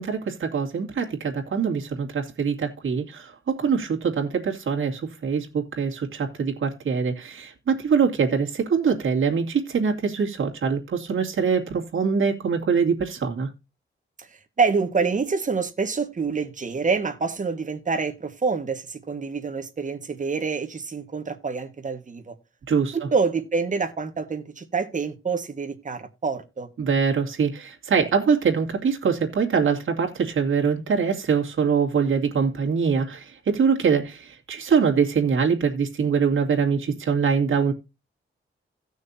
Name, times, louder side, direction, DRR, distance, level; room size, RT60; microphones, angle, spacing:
voice 1, 0.0-13.5 22.7-23.0 26.8-37.7, right 6 dB, 75° right, 2.5 m, -23 dB
voice 2, 14.6-22.3 22.9-26.7, right 4 dB, 35° right, 1.6 m, -26 dB
17.0 x 6.4 x 2.7 m
wide cardioid pair, 150°, 21 cm